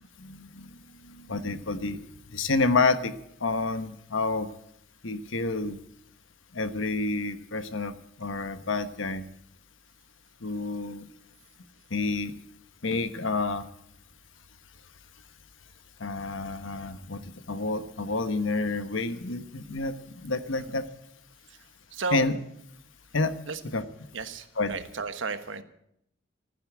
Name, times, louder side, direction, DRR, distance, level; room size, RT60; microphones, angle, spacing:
voice 1, 0.2-0.8 1.0-2.0 2.3-3.1 3.4-4.5 5.0-5.8 6.5-9.2 10.4-11.0 11.9-12.3 12.8-13.6 16.0-17.2 17.5-19.9 20.2-20.8 22.1-22.4 23.1-23.3 23.6-23.8 24.6-24.8, left 3 dB, 90° left, 11 dB, 1.2 m, -29 dB
voice 2, 21.9-22.2 23.5-23.6 24.1-25.6, right 4 dB, 85° right, 10 dB, 1.3 m, -33 dB
14.5 x 10.0 x 9.0 m, 0.74 s
head